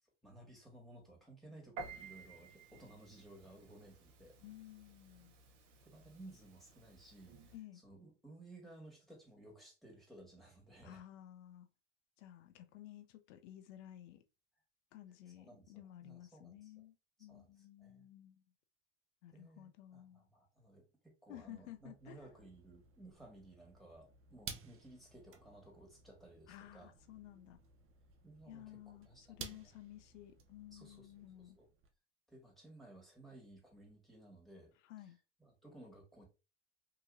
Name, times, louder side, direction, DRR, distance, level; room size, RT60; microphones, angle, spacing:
voice 1, 0.2-4.4 5.8-7.5 7.8-11.0 15.3-16.9 17.3-18.1 19.3-26.9 28.2-28.8 29.0-29.7 30.7-31.7 32.3-34.7 35.4-36.3, right 2 dB, ahead, 1.6 m, -58 dB
Piano, 1.8-7.6, right 4 dB, 85° right, 0.8 m, -54 dB
voice 2, 4.4-5.4 7.5-7.8 10.8-11.7 12.2-14.2 14.9-18.4 19.2-20.3 21.3-22.2 26.5-27.6 28.5-31.6 34.8-35.2, left 13 dB, 80° left, 0.6 m, -54 dB
sound 1, 21.4-31.9, right 6 dB, 35° right, 0.6 m, -55 dB
2.8 x 2.8 x 2.4 m
hypercardioid pair, 90°, 36 cm